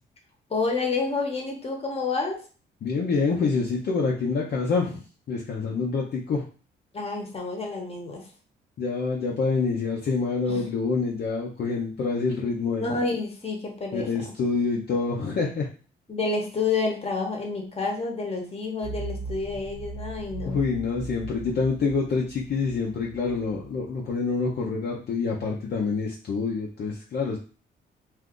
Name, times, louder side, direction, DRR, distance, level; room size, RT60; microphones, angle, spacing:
voice 1, 0.5-2.4 5.7-5.8 6.9-8.3 10.5-10.6 12.8-14.1 16.1-20.7, left 3 dB, 30° left, 1 dB, 1.0 m, -29 dB
voice 2, 2.8-6.4 8.8-12.9 13.9-15.7 20.4-27.4, left 4 dB, 55° left, -2 dB, 0.6 m, -27 dB
sound 1, 18.8-24.6, right 3 dB, 45° right, 0.8 m, -39 dB
2.6 x 2.4 x 3.7 m, 0.37 s
cardioid pair, 90°, 20 cm